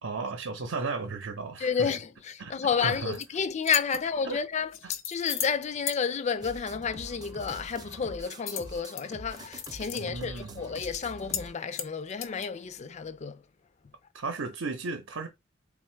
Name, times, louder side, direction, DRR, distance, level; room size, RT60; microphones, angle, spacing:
voice 1, 0.0-1.9 2.4-2.5 2.8-3.2 4.2-4.4 4.8-4.9 9.9-10.6 14.1-15.3, right 3 dB, 80° right, 0.7 m, -34 dB
voice 2, 1.6-13.4, left 6 dB, 35° left, 0.4 m, -31 dB
sound 1, 2.9-3.2 3.6-4.0 4.7-5.6 5.9-6.0 8.5-9.0 9.4-10.0 10.4-10.5 10.8-11.0 11.3-11.5 11.7-12.5, left 10 dB, 80° left, 0.6 m, -35 dB
sound 2, 6.4-11.5, right 1 dB, 20° right, 0.5 m, -45 dB
3.5 x 2.3 x 4.4 m
head